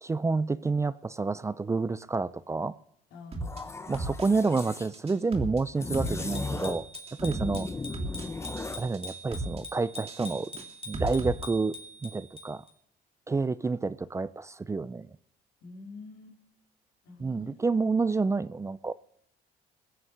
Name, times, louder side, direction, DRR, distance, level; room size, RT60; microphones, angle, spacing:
voice 1, 0.0-2.7 3.9-6.9 7.2-7.7 8.8-10.5 10.9-11.8 12.0-12.6 13.3-15.1 17.2-18.9, right 4 dB, 15° right, 0.4 m, -29 dB
voice 2, 3.1-3.7 7.3-7.7 15.6-16.4 17.0-17.6, left 3 dB, 85° left, 4.3 m, -47 dB
sound 1, 3.3-3.6 3.9-4.7 4.9-5.6 5.9-6.6 6.9-7.6 7.9-8.7 8.9-9.6 9.9-11.3, right 2 dB, 35° right, 3.1 m, -35 dB
sound 2, 3.4-4.9 5.8-6.9 7.2-8.9, left 3 dB, 15° left, 0.8 m, -37 dB
Bicycle bell, 6.1-12.7, equal, 35° left, 3.6 m, -44 dB
21.0 x 8.0 x 6.4 m
cardioid pair, 110°, 17 cm